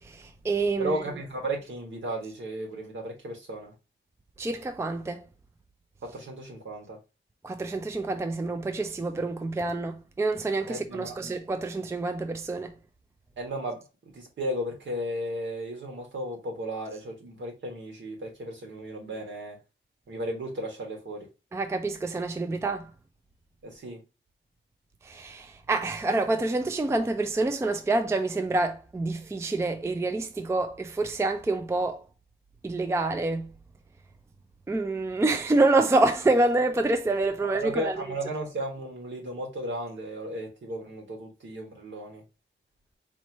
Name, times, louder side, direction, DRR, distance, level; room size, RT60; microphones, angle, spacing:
voice 1, 0.0-1.0 4.4-5.3 7.4-12.8 21.5-22.9 25.0-32.0 32.6-33.5 34.7-38.0, right 2 dB, 15° right, 0.3 m, -27 dB
voice 2, 0.8-3.7 6.0-7.0 10.7-11.1 13.4-19.6 20.1-21.3 23.6-24.0 37.6-42.2, right 1 dB, 65° right, 1.7 m, -35 dB
4.4 x 2.9 x 2.9 m
wide cardioid pair, 160°, 20 cm